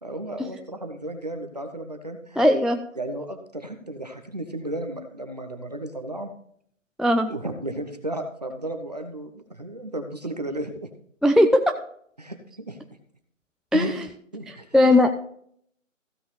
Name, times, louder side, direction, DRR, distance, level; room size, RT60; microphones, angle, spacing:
voice 1, 0.0-2.4 3.0-6.3 7.3-10.9 12.2-12.8 13.7-13.9 14.3-14.7, right 1 dB, 30° right, 6 dB, 0.9 m, -34 dB
voice 2, 2.4-2.8 7.0-7.3 11.2-11.7 13.7-14.0 14.5-15.1, left 1 dB, ahead, 4 dB, 0.3 m, -19 dB
15.0 x 5.4 x 4.3 m, 0.63 s
figure-of-eight pair, 170°, 39 cm